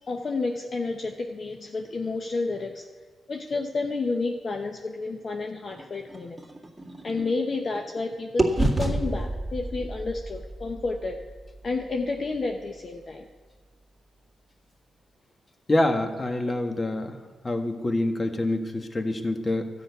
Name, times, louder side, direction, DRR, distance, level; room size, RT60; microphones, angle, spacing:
voice 1, 0.1-2.8 3.3-6.4 7.0-11.2 11.6-13.3, left 3 dB, 50° left, 3 dB, 0.9 m, -30 dB
sound 1, 5.7-8.0 8.4-12.4, right 1 dB, 15° right, 2.2 m, -30 dB
voice 2, 15.7-17.1 17.4-19.7, left 1 dB, 30° left, 5 dB, 1.5 m, -26 dB
13.0 x 6.4 x 9.5 m, 1.4 s
cardioid pair, 65°, 0 cm